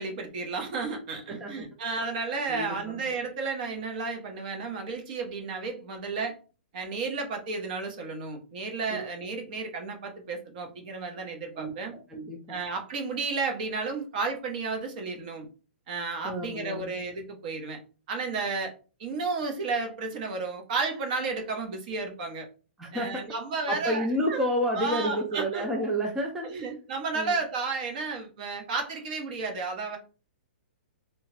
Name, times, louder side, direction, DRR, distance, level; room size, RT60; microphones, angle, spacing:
voice 1, 0.0-6.4 6.7-11.9 12.5-15.5 15.9-17.8 18.1-18.7 19.0-22.5 22.9-24.5 24.8-25.6 26.4-30.0, right 4 dB, 45° right, 4 dB, 0.9 m, -32 dB
voice 2, 2.5-3.0 8.9-9.0 11.5-11.7 12.1-12.6 16.2-16.9 22.8-23.2 23.7-26.6 27.1-27.4, equal, 5° right, -1 dB, 0.4 m, -30 dB
2.8 x 2.4 x 3.2 m, 0.34 s
hypercardioid pair, 155°, 6 cm